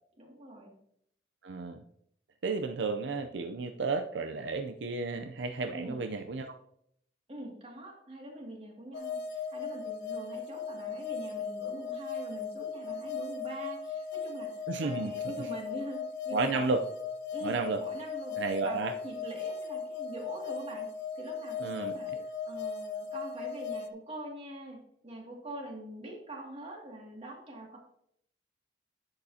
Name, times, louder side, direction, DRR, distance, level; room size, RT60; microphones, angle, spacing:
voice 1, 0.2-0.7 5.7-6.1 7.3-16.7 17.3-22.1 22.5-27.8, right 1 dB, 35° right, -1 dB, 2.3 m, -44 dB
voice 2, 1.4-1.8 2.4-6.5 14.7-15.1 16.3-16.8 17.4-17.8 18.4-18.9 21.6-21.9, right 3 dB, 75° right, 7 dB, 0.6 m, -32 dB
sound 1, 8.9-23.9, left 5 dB, 65° left, 0.8 m, -37 dB
10.5 x 7.9 x 2.8 m, 0.70 s
head